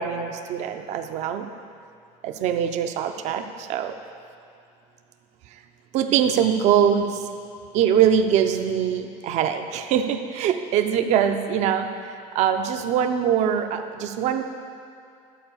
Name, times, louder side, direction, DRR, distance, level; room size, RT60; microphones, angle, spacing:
voice 1, 0.0-1.5 2.2-3.9 5.9-7.1 7.7-11.9 12.3-14.4, right 8 dB, 55° right, 7 dB, 0.7 m, -22 dB
11.0 x 4.7 x 7.1 m, 2.5 s
cardioid pair, 135°, 14 cm